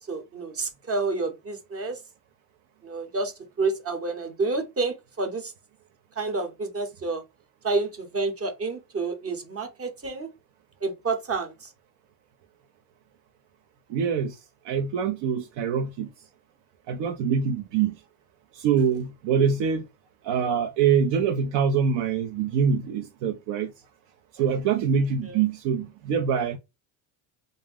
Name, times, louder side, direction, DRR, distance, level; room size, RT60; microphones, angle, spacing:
voice 1, 0.1-2.0 2.8-5.5 6.2-7.2 7.6-10.3 10.8-11.7 25.2-25.4, right 3 dB, 30° right, 0.8 m, -29 dB
voice 2, 13.9-14.3 14.6-16.1 16.9-18.0 18.5-19.8 20.2-23.7 24.3-26.6, right 7 dB, 80° right, 0.6 m, -24 dB
2.6 x 2.1 x 3.4 m
supercardioid pair, 95°, 44 cm